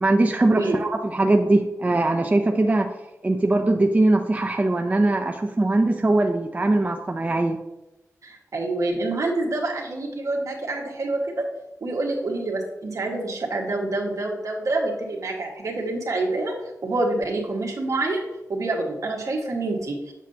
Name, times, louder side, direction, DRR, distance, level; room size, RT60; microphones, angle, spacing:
voice 1, 0.0-2.9 3.2-7.6, right 2 dB, 25° right, 4 dB, 0.5 m, -21 dB
voice 2, 8.2-11.5 11.8-16.6 16.8-18.2 18.5-20.1, right 2 dB, 70° right, 0 dB, 1.5 m, -27 dB
7.6 x 7.2 x 2.8 m, 0.95 s
wide cardioid pair, 110°, 6 cm